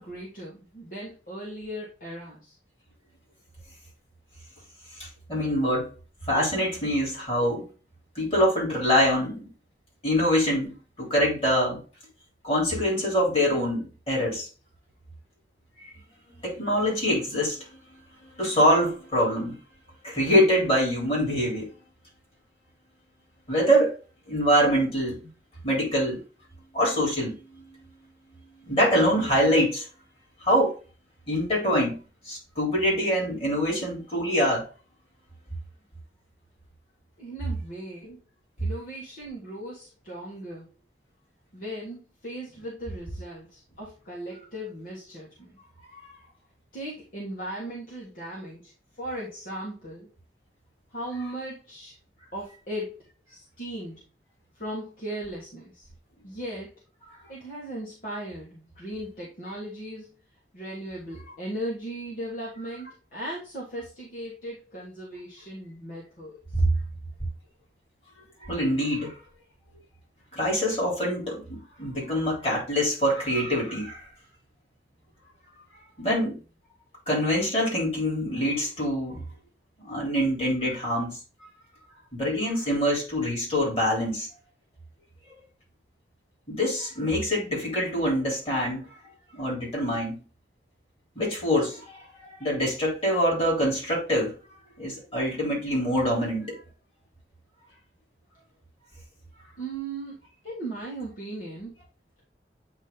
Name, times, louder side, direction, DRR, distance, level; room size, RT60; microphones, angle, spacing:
voice 1, 0.0-2.5 37.2-38.2 38.6-40.7 41.5-45.5 46.7-48.7 49.0-50.1 50.9-51.9 52.3-53.0 53.3-54.0 54.5-55.9 56.2-56.7 57.3-60.1 60.5-66.4 99.6-100.1 100.4-101.7, right 1 dB, 50° left, 1.6 m, -37 dB
voice 2, 5.0-5.9 6.3-7.7 8.1-9.5 10.0-11.8 12.4-14.5 15.8-15.9 16.4-17.8 18.2-19.6 20.0-21.7 23.5-23.9 24.3-25.3 25.6-26.2 26.7-27.6 28.6-29.8 30.4-30.8 31.3-34.7 38.6-38.7 45.9-46.0 66.5-66.7 68.4-69.1 70.3-74.0 76.0-76.4 77.1-79.2 79.8-81.2 82.1-84.3 86.5-88.9 89.3-90.1 91.1-92.0 92.4-94.3 94.8-96.6, equal, 35° left, 3.3 m, -25 dB
8.7 x 2.9 x 3.8 m
head